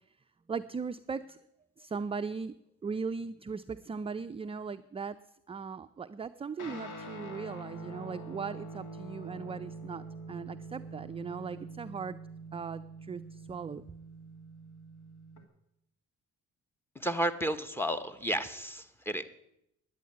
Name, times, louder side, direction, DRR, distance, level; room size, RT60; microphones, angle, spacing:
voice 1, 0.5-1.4 1.8-2.5 2.8-5.2 5.5-12.2 12.5-13.9, right 5 dB, 20° right, 11 dB, 0.4 m, -38 dB
Guitar, 6.6-15.4, right 2 dB, 85° left, 2.3 m, -45 dB
voice 2, 16.9-19.2, equal, 5° left, 11 dB, 1.1 m, -32 dB
10.5 x 8.6 x 9.4 m, 0.81 s
cardioid pair, 90°, 30 cm